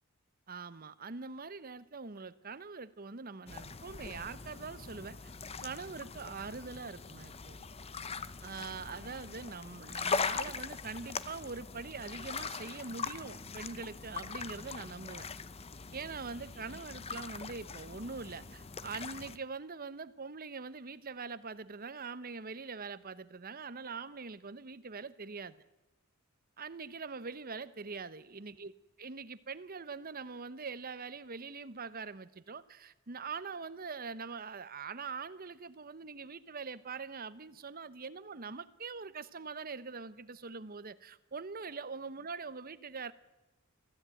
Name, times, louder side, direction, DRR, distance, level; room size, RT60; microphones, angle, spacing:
voice 1, 0.5-5.2 5.6-7.7 8.4-15.3 15.9-25.5 26.6-28.7 29.0-43.1, right 4 dB, 45° right, 0.9 m, -43 dB
sound 1, 3.5-19.4, left 5 dB, 30° left, 0.7 m, -41 dB
23.5 x 14.5 x 9.1 m
head